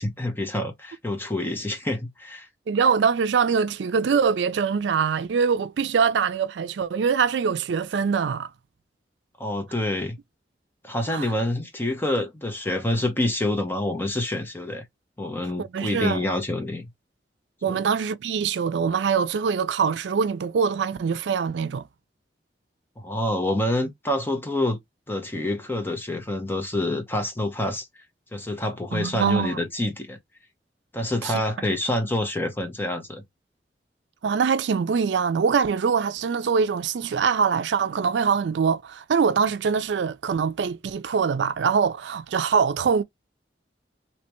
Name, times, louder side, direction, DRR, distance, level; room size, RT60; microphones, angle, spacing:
voice 1, 0.0-2.5 9.4-10.2 10.8-14.8 15.2-16.9 17.7-17.8 23.0-24.8 25.1-27.9 28.3-30.2 30.9-33.2, left 1 dB, 10° left, 0.8 m, -27 dB
voice 2, 2.7-8.5 11.1-11.3 15.6-16.2 17.6-21.9 28.9-29.6 31.2-31.3 34.2-43.0, right 6 dB, 80° right, 0.4 m, -23 dB
3.2 x 2.9 x 3.0 m
head